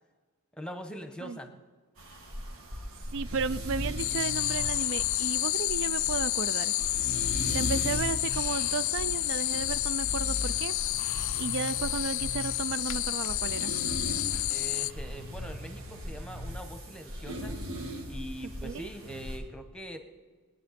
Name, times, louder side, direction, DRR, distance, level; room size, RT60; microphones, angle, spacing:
voice 1, 0.6-1.6 7.8-8.0 14.5-17.6 18.1-20.0, equal, 5° left, 7 dB, 1.0 m, -43 dB
sound 1, 2.0-19.4, equal, 75° right, 1.8 m, -38 dB
voice 2, 3.1-6.7 7.4-10.7 11.4-13.7 18.6-18.9, right 6 dB, 60° right, 15 dB, 0.3 m, -34 dB
sound 2, 4.0-14.9, left 18 dB, 60° left, 0.3 m, -30 dB
21.5 x 9.6 x 4.2 m, 1.4 s
head